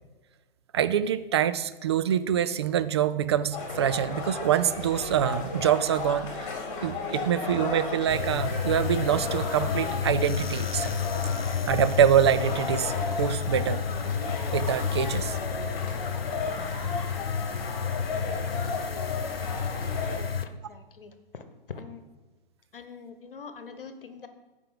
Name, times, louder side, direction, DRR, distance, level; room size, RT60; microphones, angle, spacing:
voice 1, 0.7-6.5 6.8-11.0 11.7-13.8 14.5-15.4, right 9 dB, 30° right, 13 dB, 0.3 m, -25 dB
sound 1, 3.5-20.2, left 4 dB, 35° left, 2.2 m, -34 dB
sound 2, 8.1-20.5, left 7 dB, 80° left, 0.7 m, -31 dB
voice 2, 20.1-22.0 22.7-24.3, left 5 dB, 65° left, 9 dB, 1.2 m, -44 dB
14.5 x 5.1 x 5.1 m, 1.2 s
figure-of-eight pair, 125°, 29 cm